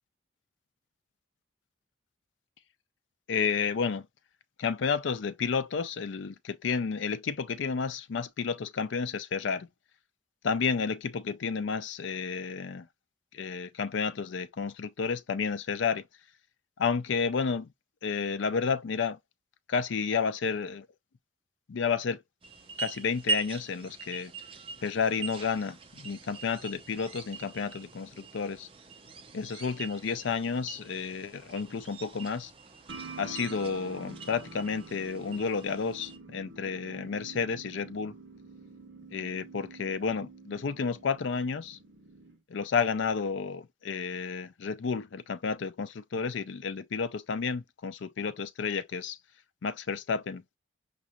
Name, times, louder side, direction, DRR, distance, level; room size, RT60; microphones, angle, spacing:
voice 1, 3.3-4.1 4.6-9.7 10.4-12.9 13.3-16.0 16.8-17.7 18.0-19.2 19.7-20.9 21.7-22.2 22.8-24.3 24.8-28.7 29.3-32.5 33.2-38.1 39.1-41.8 42.5-49.2 49.6-50.4, left 5 dB, 75° left, 0.4 m, -31 dB
sound 1, 22.4-36.2, right 4 dB, 30° right, 0.5 m, -41 dB
sound 2, 32.9-42.4, right 3 dB, 70° right, 0.7 m, -47 dB
5.3 x 2.4 x 2.9 m
head